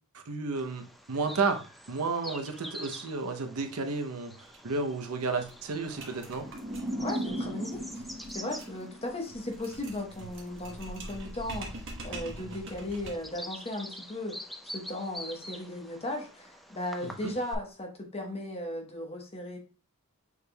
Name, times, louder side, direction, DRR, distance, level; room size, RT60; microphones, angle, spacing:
voice 1, 0.1-6.5 17.0-17.3, right 4 dB, 80° right, 6 dB, 0.7 m, -32 dB
Bird vocalization bird call bird song, 0.6-17.6, equal, ahead, 0.4 m, -47 dB
sound 1, 4.5-4.6 4.9-5.0 5.2-13.4, right 2 dB, 60° right, 1.1 m, -44 dB
sound 2, 6.4-9.6, equal, 30° right, 0.8 m, -37 dB
voice 2, 7.0-14.4 14.6-19.6, left 1 dB, 30° left, 2 dB, 1.1 m, -37 dB
6.4 x 3.4 x 2.2 m, 0.34 s
head